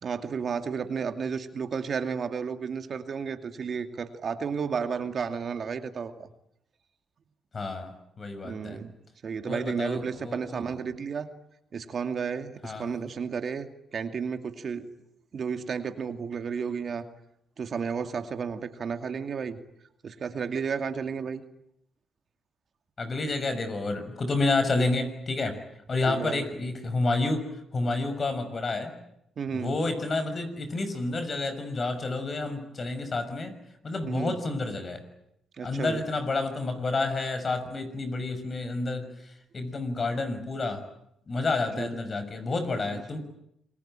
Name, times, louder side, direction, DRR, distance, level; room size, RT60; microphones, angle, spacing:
voice 1, 0.0-6.3 8.4-8.9 9.2-11.3 11.7-14.9 15.3-17.0 17.6-19.6 20.0-21.4 26.1-26.4 29.4-29.8 34.0-34.4 35.6-36.0 41.8-41.9 42.9-43.0, right 6 dB, 55° right, 8 dB, 2.5 m, -32 dB
voice 2, 7.5-8.8 9.5-10.8 12.6-12.9 23.0-25.6 25.9-27.5 27.7-28.9 29.5-33.6 33.8-35.0 35.6-40.9 41.3-43.2, left 3 dB, 40° left, 9 dB, 6.3 m, -29 dB
27.5 x 22.5 x 9.1 m, 0.78 s
cardioid pair, 75°, 0 cm